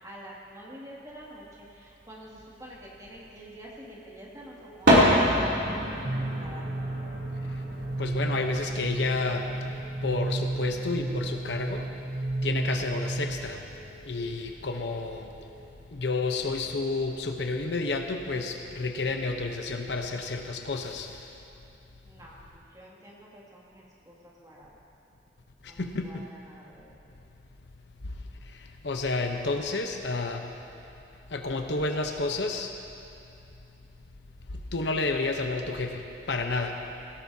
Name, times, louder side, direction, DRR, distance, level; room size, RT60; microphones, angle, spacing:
voice 1, 0.0-5.8 6.2-6.7 22.0-24.7 25.6-27.0, equal, 20° right, -5 dB, 2.3 m, -47 dB
sound 1, 1.4-1.5 2.4-3.3 4.3-4.4 4.6-15.9, equal, 75° right, 3.0 m, -30 dB
sound 2, 3.7-4.1 4.4-4.8 5.1-5.5 6.2-6.6 6.9-7.3 7.6-8.0 8.7-9.1 9.4-9.8 10.1-10.5 11.2-11.6 11.9-12.3 12.6-13.0 13.7-14.1 14.4-14.8 15.1-15.5 16.2-16.6 16.9-17.3 17.6-18.0, equal, 15° left, 1.4 m, -54 dB
sound 3, 6.0-13.6, right 2 dB, 40° right, 0.5 m, -33 dB
voice 2, 8.0-11.9 12.4-13.8 14.0-15.3 15.9-21.3 25.6-26.3 28.0-30.5 31.3-32.7 34.5-36.8, left 3 dB, 75° left, 4 dB, 0.9 m, -31 dB
17.0 x 17.0 x 2.8 m, 2.7 s
head